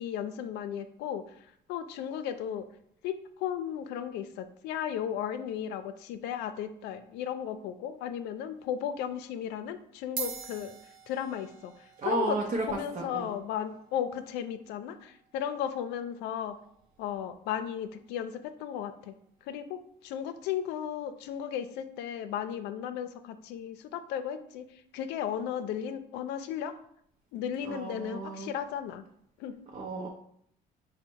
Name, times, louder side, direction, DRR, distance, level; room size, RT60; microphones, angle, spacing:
voice 1, 0.0-2.6 3.0-10.8 11.1-12.4 12.7-16.5 17.0-19.1 19.4-26.7 27.3-29.0 29.4-29.6, left 9 dB, 90° left, 10 dB, 0.4 m, -35 dB
sound 1, 8.5-8.8 9.6-9.7 10.0-18.7, right 6 dB, 65° right, 0.9 m, -47 dB
voice 2, 12.0-13.3 27.6-28.5 29.7-30.1, right 3 dB, 45° right, 0 dB, 0.6 m, -33 dB
5.1 x 2.1 x 4.5 m, 0.69 s
cardioid pair, 110°, 17 cm